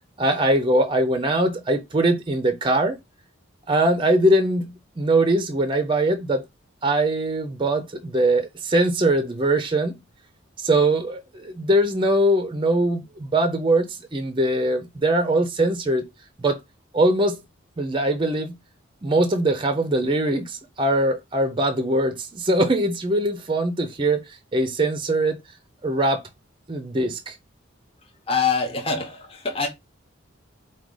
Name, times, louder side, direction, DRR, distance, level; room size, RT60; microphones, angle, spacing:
voice 1, 0.2-3.0 3.7-6.4 6.8-9.9 10.6-16.0 16.4-16.6 16.9-17.4 17.8-18.5 19.0-24.2 24.5-25.4 25.8-26.2 26.7-27.4, right 1 dB, 25° right, 0.4 m, -22 dB
voice 2, 28.0-29.7, left 5 dB, 25° left, 0.7 m, -25 dB
4.7 x 2.2 x 3.7 m
head